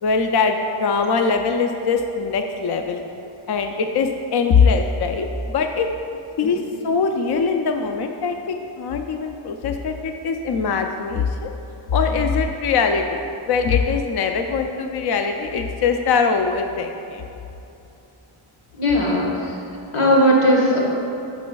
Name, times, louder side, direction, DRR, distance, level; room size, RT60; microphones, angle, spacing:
voice 1, 0.0-3.0 3.5-5.9 6.4-11.5 11.9-13.1 13.5-17.2, left 5 dB, 55° left, 5 dB, 0.5 m, -22 dB
voice 2, 18.8-19.5 19.9-20.8, equal, 90° left, -3 dB, 1.4 m, -17 dB
9.0 x 6.3 x 2.3 m, 2.9 s
cardioid pair, 60°, 49 cm